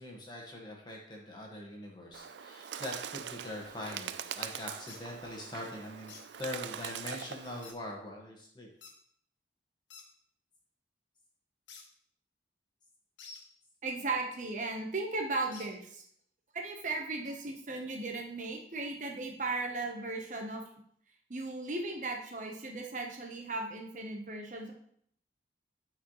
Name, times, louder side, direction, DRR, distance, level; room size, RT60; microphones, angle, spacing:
voice 1, 0.0-6.1 6.4-8.7, left 1 dB, 25° left, -1 dB, 1.5 m, -42 dB
Bird, 2.1-7.7, right 9 dB, 80° right, 0.4 m, -42 dB
sound 1, 4.9-5.0 6.1-6.3 7.6-7.8 8.8-9.0 9.9-10.1 11.7-11.9 13.2-13.4 15.5-15.7, left 5 dB, 90° left, 1.1 m, -49 dB
voice 2, 13.8-16.0 16.5-20.6 21.3-24.7, right 3 dB, 45° right, 2 dB, 0.9 m, -36 dB
11.5 x 4.8 x 3.1 m, 0.65 s
head